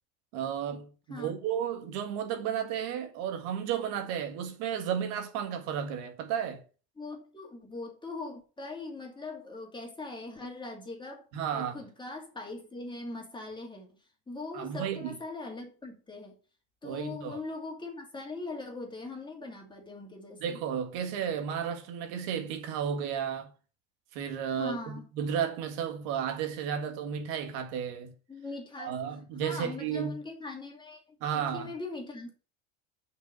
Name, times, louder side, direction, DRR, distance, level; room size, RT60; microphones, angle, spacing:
voice 1, 0.3-6.6 11.3-11.8 14.5-15.2 16.8-17.4 20.4-23.5 24.1-28.1 28.8-30.2 31.2-31.7, right 8 dB, 65° right, 1.8 m, -33 dB
voice 2, 7.0-13.9 14.3-16.4 16.8-20.6 24.6-25.1 28.3-29.0 29.4-32.3, left 3 dB, 10° left, 2.3 m, -41 dB
5.6 x 5.6 x 6.6 m
supercardioid pair, 125°, 39 cm